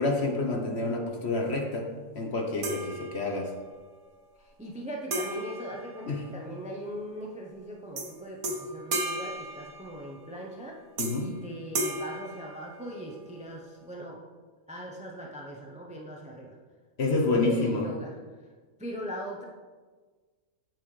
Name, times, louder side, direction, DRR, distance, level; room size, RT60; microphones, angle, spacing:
voice 1, 0.0-1.9 2.1-3.5 6.1-6.2 11.0-11.3 17.0-17.8, left 3 dB, 50° left, 2 dB, 1.1 m, -28 dB
sound 1, 2.6-3.6 5.1-6.7 8.0-8.1 8.4-10.3 11.0-11.4 11.7-13.2, right 2 dB, 70° right, 1.5 m, -35 dB
voice 2, 4.4-10.8 11.2-14.2 14.7-16.6 17.1-18.1 18.8-19.5, equal, 5° right, 0 dB, 0.5 m, -40 dB
9.2 x 7.7 x 3.3 m, 1.4 s
omnidirectional pair, 1.6 m